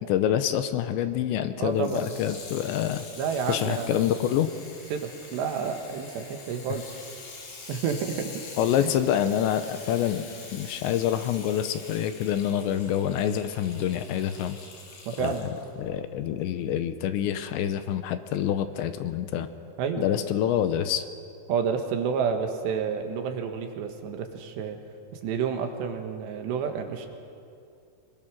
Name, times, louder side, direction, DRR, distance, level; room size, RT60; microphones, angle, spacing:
voice 1, 0.1-3.1 3.5-4.5 8.6-14.6 15.2-15.5 15.8-19.5 20.0-21.0, left 10 dB, 80° left, 10 dB, 3.0 m, -26 dB
voice 2, 1.6-2.1 3.2-4.0 4.9-6.9 7.7-8.3 8.8-8.9 15.1-15.5 19.8-20.1 21.5-24.8 25.1-27.1, right 6 dB, 70° right, 5 dB, 3.5 m, -30 dB
Water tap faucet / Sink (filling or washing), 1.7-15.7 16.4-16.5, left 4 dB, 65° left, 6.3 m, -45 dB
25.0 x 23.0 x 6.3 m, 2.5 s
omnidirectional pair, 5.4 m